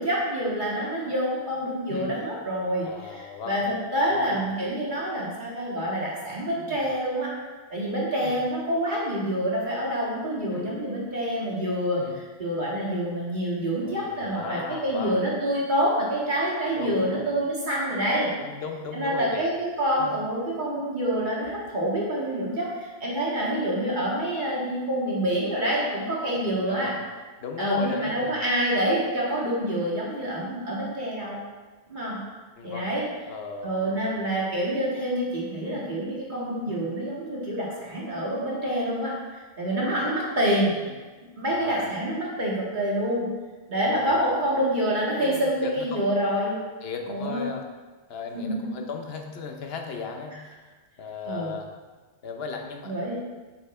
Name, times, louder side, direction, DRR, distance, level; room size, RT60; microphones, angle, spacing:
voice 1, 0.0-7.3 7.7-12.0 12.4-18.3 18.9-26.9 27.6-31.4 31.9-32.2 32.6-33.1 33.6-40.7 41.4-43.3 43.7-46.5 47.1-47.4 48.3-48.7 51.3-51.5 52.8-53.1, equal, 45° right, -6 dB, 2.0 m, -27 dB
voice 2, 2.8-3.6 4.1-4.4 6.6-6.9 8.2-8.4 10.5-10.7 11.9-12.1 13.8-15.3 16.7-17.3 18.4-19.5 20.0-20.1 26.4-27.0 27.4-28.4 32.6-32.9 33.3-34.2 35.6-35.8 36.7-36.8 40.7-40.9 41.5-42.0 43.8-44.3 45.2-46.0 46.8-47.6 48.1-51.7 52.2-53.0, left 5 dB, 65° left, 3 dB, 1.0 m, -37 dB
7.9 x 5.9 x 3.2 m, 1.3 s
omnidirectional pair, 1.1 m